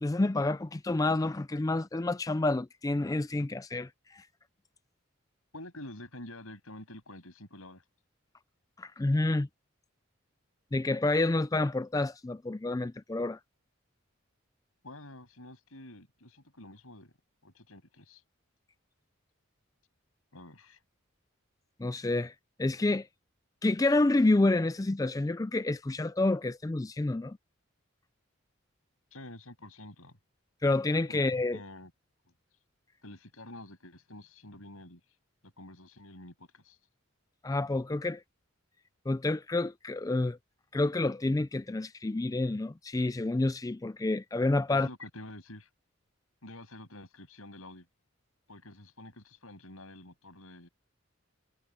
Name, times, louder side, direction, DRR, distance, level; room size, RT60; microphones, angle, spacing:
voice 1, 0.0-4.3 8.8-9.5 10.7-13.4 21.8-22.3 22.6-23.1 23.6-27.4 30.6-31.6 37.4-38.2 39.1-40.4 40.7-44.9, left 2 dB, 15° left, 0.3 m, -28 dB
voice 2, 5.5-7.8 14.8-17.1 17.4-18.2 20.3-20.8 29.1-30.2 31.1-31.2 31.5-31.9 33.0-35.0 35.4-36.8 44.7-45.7 46.4-47.9 48.5-50.7, left 1 dB, 90° left, 7.8 m, -48 dB
head